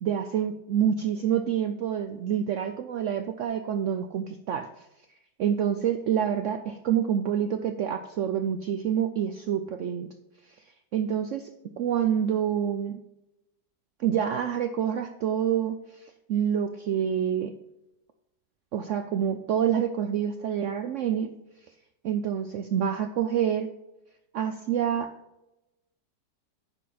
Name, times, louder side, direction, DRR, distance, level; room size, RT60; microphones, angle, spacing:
voice 1, 0.0-4.9 5.4-10.1 10.5-10.6 10.9-11.5 11.8-13.0 14.0-17.5 18.7-21.3 22.0-23.7 24.3-25.1, right 9 dB, 70° right, 8 dB, 0.7 m, -27 dB
9.8 x 6.4 x 4.2 m, 0.93 s
omnidirectional pair, 1.8 m